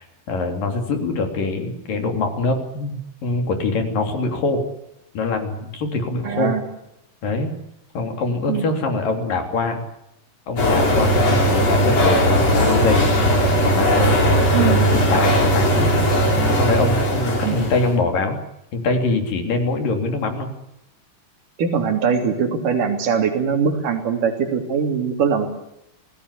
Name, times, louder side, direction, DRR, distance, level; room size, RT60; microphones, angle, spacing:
voice 1, 0.0-4.6 5.1-6.5 7.2-7.6 7.9-9.8 10.5-13.1 13.6-14.3 14.5-15.9 16.5-18.4 18.7-20.5, left 3 dB, 60° left, 4 dB, 4.8 m, -23 dB
voice 2, 6.2-6.6 8.5-8.6 14.5-14.8 17.4-17.6 21.6-25.5, right 6 dB, 60° right, 5 dB, 4.5 m, -21 dB
sound 1, 10.6-18.0, equal, 40° left, 5.9 m, -18 dB
27.5 x 18.5 x 8.4 m, 0.83 s
omnidirectional pair, 4.4 m